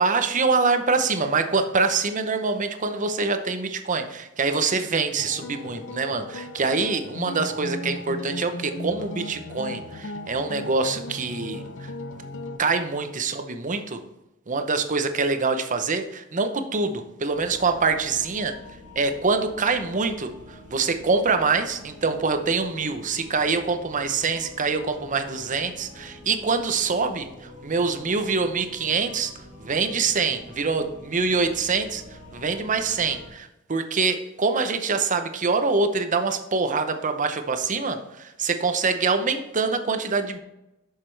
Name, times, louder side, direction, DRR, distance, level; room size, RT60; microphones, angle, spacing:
voice 1, 0.0-11.9 12.6-14.0 14.5-18.5 19.0-20.3 20.7-27.3 27.6-29.3 29.6-32.0 32.3-40.4, right 4 dB, 40° right, 8 dB, 0.7 m, -25 dB
sound 1, 5.2-12.6, left 1 dB, 65° left, 0.7 m, -36 dB
sound 2, 17.3-33.3, left 1 dB, 80° left, 2.1 m, -46 dB
7.5 x 6.6 x 3.3 m, 0.92 s
head